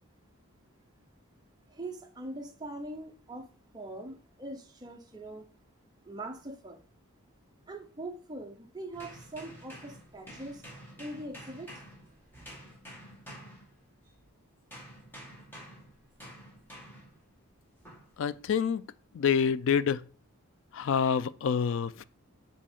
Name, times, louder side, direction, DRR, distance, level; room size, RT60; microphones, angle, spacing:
voice 1, 1.7-3.5 3.7-5.5 6.0-6.8 7.7-10.6 11.0-11.7, right 1 dB, 20° right, 0.7 m, -42 dB
sound 1, 8.9-14.2 14.7-17.2 17.9-18.1, equal, 10° left, 1.7 m, -49 dB
voice 2, 18.2-18.8 19.1-20.0 20.7-22.0, left 7 dB, 55° left, 0.3 m, -27 dB
7.5 x 4.3 x 3.6 m
head